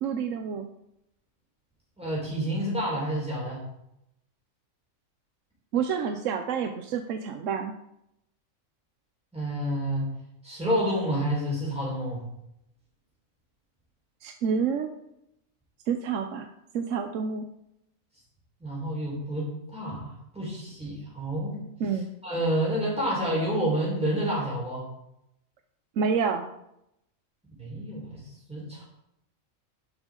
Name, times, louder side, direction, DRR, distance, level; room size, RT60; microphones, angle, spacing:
voice 1, 0.0-0.7 5.7-7.7 14.2-14.9 15.9-16.5 16.7-17.5 21.8-22.1 26.0-26.5, right 6 dB, 70° right, 6 dB, 1.0 m, -28 dB
voice 2, 2.0-3.6 9.3-10.1 10.4-12.2 18.6-19.5 19.7-21.6 22.2-24.9 27.6-28.2 28.5-28.8, equal, 5° right, -5 dB, 4.4 m, -29 dB
11.5 x 7.2 x 3.8 m, 0.81 s
omnidirectional pair, 1.4 m